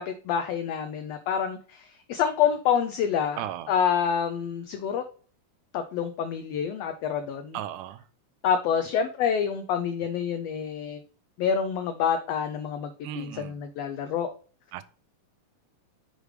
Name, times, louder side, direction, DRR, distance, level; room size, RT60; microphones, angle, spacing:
voice 1, 0.0-5.0 5.7-7.6 8.4-11.0 11.4-14.3, left 7 dB, 85° left, 1.4 m, -27 dB
voice 2, 3.4-3.7 7.5-8.0 13.0-13.6 14.7-14.8, right 12 dB, 90° right, 2.1 m, -35 dB
6.5 x 5.0 x 3.1 m
omnidirectional pair, 3.5 m